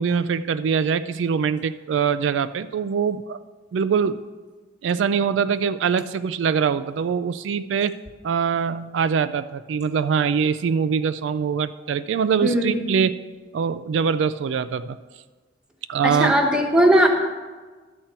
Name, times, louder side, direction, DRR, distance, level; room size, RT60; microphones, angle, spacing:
voice 1, 0.0-3.4 3.7-4.2 4.8-8.0 8.2-13.2 13.5-15.0 15.9-16.3, right 6 dB, 85° right, 13 dB, 0.3 m, -23 dB
voice 2, 12.4-12.8 16.0-17.1, equal, 5° right, 2 dB, 1.1 m, -18 dB
12.0 x 4.4 x 7.9 m, 1.4 s
head